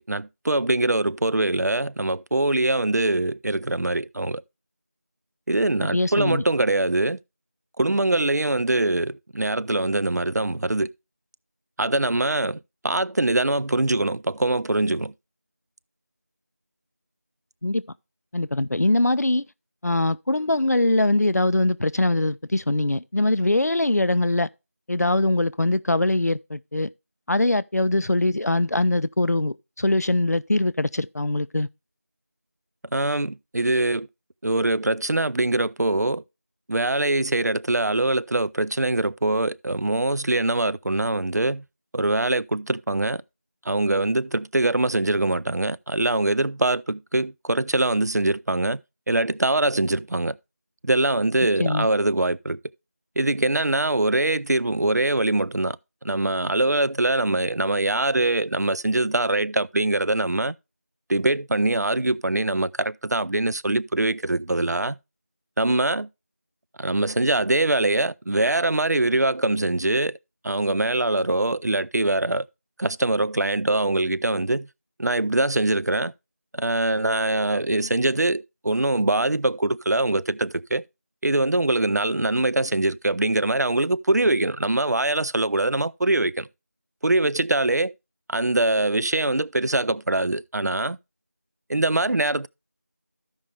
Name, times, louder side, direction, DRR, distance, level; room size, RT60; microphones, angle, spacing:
voice 1, 0.0-4.4 5.5-7.2 7.8-10.9 11.8-15.1 32.9-34.1 34.4-36.2 36.7-41.6 41.9-43.2 43.7-48.8 49.1-50.4 50.8-52.6 53.2-55.8 56.0-60.5 61.1-65.0 65.6-66.1 66.8-70.2 70.4-72.5 72.8-74.7 75.0-76.1 76.5-80.8 81.2-86.5 87.0-87.9 88.3-91.0 91.7-92.5, right 2 dB, 80° right, 0.4 m, -23 dB
voice 2, 5.9-6.4 17.6-17.8 18.3-19.4 19.8-24.5 24.9-26.9 27.3-31.7 51.6-51.9, left 2 dB, 70° left, 0.5 m, -22 dB
14.0 x 5.3 x 3.3 m
figure-of-eight pair, 180°, 9 cm